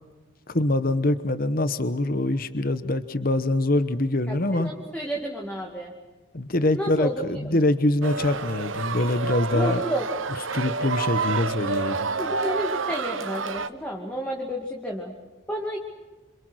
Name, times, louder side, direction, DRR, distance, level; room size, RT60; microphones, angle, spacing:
voice 1, 0.5-4.7 6.3-9.8 10.5-12.1, left 2 dB, 45° left, 11 dB, 1.1 m, -24 dB
voice 2, 4.3-5.9 6.7-7.6 9.5-10.1 10.8-10.9 12.2-15.1 15.5-15.8, equal, 5° left, -1 dB, 2.3 m, -31 dB
sound 1, 8.0-13.7, right 5 dB, 80° right, 1.0 m, -29 dB
27.5 x 27.0 x 6.3 m, 1.2 s
head